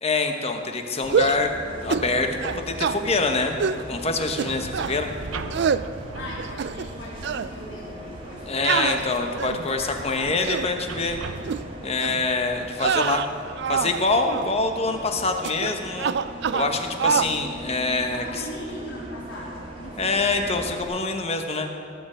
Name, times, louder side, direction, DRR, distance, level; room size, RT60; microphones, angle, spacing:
voice 1, 0.0-1.5 1.8-2.4 2.7-3.6 3.9-5.1 8.5-11.2 11.8-13.2 13.7-16.1 16.5-18.4 20.0-21.7, left 3 dB, 30° left, 5 dB, 1.1 m, -25 dB
Bus, 1.0-20.8, equal, 25° right, 1.9 m, -39 dB
sound 1, 1.0-1.5 1.9-2.1 2.4-3.0 3.6-3.8 4.4-5.0 5.5-5.9 6.4-7.0 7.2-7.5 8.6-9.7 10.3-10.7 11.4-11.6 12.0-12.2 12.7-14.0 14.3-14.5 15.4-15.7 16.0-16.7 17.0-17.3, right 6 dB, 55° right, 0.4 m, -25 dB
sound 2, 4.4-11.8, right 3 dB, 80° right, 0.7 m, -39 dB
voice 2, 6.1-10.3 18.1-20.2, left 1 dB, 70° left, -6 dB, 3.1 m, -39 dB
17.5 x 6.8 x 7.4 m, 2.3 s
head